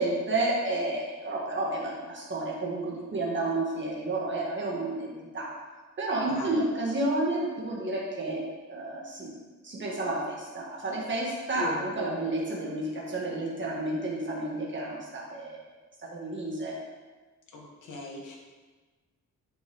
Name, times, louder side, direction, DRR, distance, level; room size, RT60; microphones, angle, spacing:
voice 1, 0.0-5.5 6.0-8.4 8.7-9.3 9.6-15.6 16.1-16.8, right 2 dB, 35° right, -5 dB, 1.9 m, -31 dB
voice 2, 6.3-6.6 11.6-11.9 17.5-18.4, left 2 dB, 70° left, -1 dB, 1.5 m, -39 dB
8.7 x 5.2 x 3.6 m, 1.3 s
wide cardioid pair, 165°, 31 cm